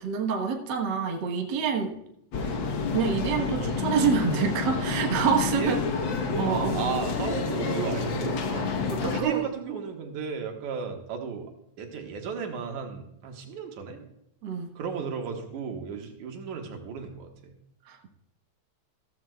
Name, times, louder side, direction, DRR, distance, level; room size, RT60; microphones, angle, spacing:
voice 1, 0.0-1.9 2.4-2.6 2.9-5.8 6.4-6.9 8.9-9.5 14.4-14.7 17.8-18.1, right 6 dB, 50° right, 2 dB, 1.3 m, -27 dB
sound 1, 2.3-9.2, left 4 dB, 60° left, 1.3 m, -29 dB
voice 2, 6.5-8.7 9.1-11.5 11.8-14.0 14.8-17.5, right 6 dB, 80° right, 3 dB, 2.8 m, -34 dB
14.5 x 14.0 x 2.3 m, 0.78 s
omnidirectional pair, 3.4 m